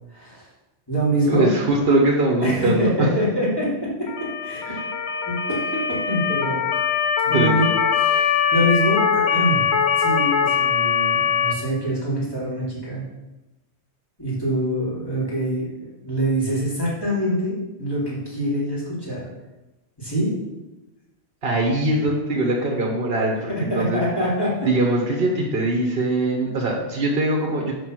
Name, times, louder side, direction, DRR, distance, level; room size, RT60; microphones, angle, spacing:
voice 1, 0.1-0.5 0.9-1.5 2.4-3.7 4.4-4.7 5.2-6.6 7.3-7.7 8.0-9.6 10.0-13.0 14.2-19.2 20.0-20.3 23.5-24.5, equal, 20° left, -8 dB, 3.3 m, -24 dB
voice 2, 1.2-3.1 4.7-4.8 7.3-7.5 21.4-24.0 24.7-27.7, right 2 dB, 55° right, -1 dB, 1.3 m, -22 dB
Motor vehicle (road) / Siren, 4.1-11.5, left 7 dB, 75° left, 0.9 m, -22 dB
6.6 x 5.0 x 6.1 m, 1.0 s
omnidirectional pair, 1.1 m